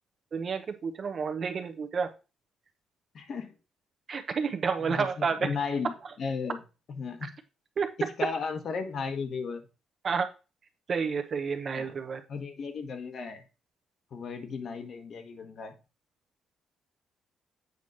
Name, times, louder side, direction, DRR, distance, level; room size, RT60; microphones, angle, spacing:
voice 1, 0.3-2.1 4.1-5.4 7.8-7.9 10.0-10.3 10.9-12.2, right 5 dB, 50° right, 7 dB, 1.0 m, -30 dB
voice 2, 3.1-3.5 4.8-6.6 6.9-7.3 8.0-9.6 11.7-11.9 12.3-13.4 14.1-15.8, left 5 dB, 55° left, 6 dB, 1.2 m, -35 dB
8.2 x 3.2 x 5.3 m, 0.31 s
cardioid pair, 90°, 0 cm